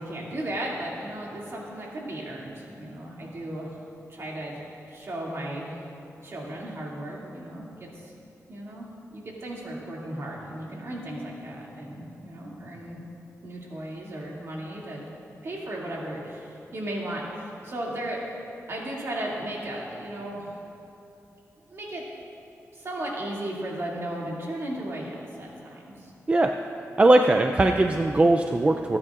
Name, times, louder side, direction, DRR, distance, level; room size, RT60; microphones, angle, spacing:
voice 1, 0.0-3.7 4.1-4.6 4.9-5.8 6.2-8.1 8.5-13.0 13.4-15.0 15.4-18.2 18.7-20.5 21.7-22.0 22.7-26.1, right 1 dB, 50° right, -4 dB, 2.4 m, -35 dB
voice 2, 27.0-29.0, right 2 dB, 25° right, 5 dB, 0.4 m, -19 dB
26.5 x 9.6 x 2.5 m, 2.8 s
wide cardioid pair, 145°, 6 cm